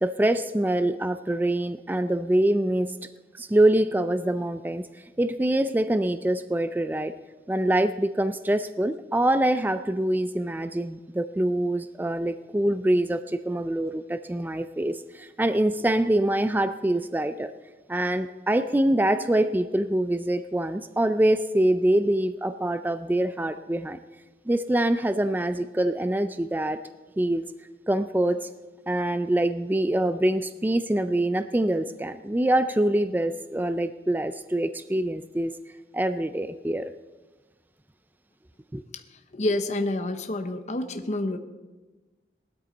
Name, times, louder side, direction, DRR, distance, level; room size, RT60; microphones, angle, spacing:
voice 1, 0.0-3.1 3.3-4.8 5.2-7.1 7.5-17.5 17.9-24.0 24.5-26.8 27.2-27.4 27.9-28.5 28.9-35.5 35.9-36.9 38.7-38.8, right 1 dB, 10° right, 11 dB, 0.3 m, -25 dB
voice 2, 38.9-41.4, left 2 dB, 40° left, 8 dB, 0.7 m, -29 dB
19.0 x 12.5 x 3.9 m, 1.2 s
head